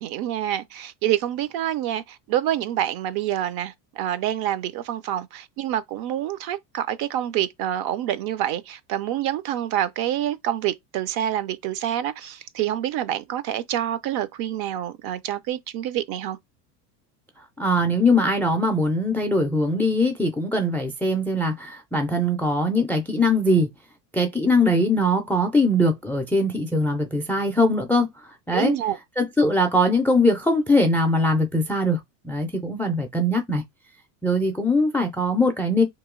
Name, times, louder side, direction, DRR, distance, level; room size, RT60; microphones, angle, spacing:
voice 1, 0.0-16.4 28.5-29.0, right 11 dB, 50° right, 0.5 m, -27 dB
voice 2, 17.6-23.7 24.1-28.1 28.5-28.7 29.2-33.6 34.2-35.8, left 1 dB, 5° left, 0.3 m, -21 dB
3.0 x 2.8 x 3.6 m
supercardioid pair, 95°, 49 cm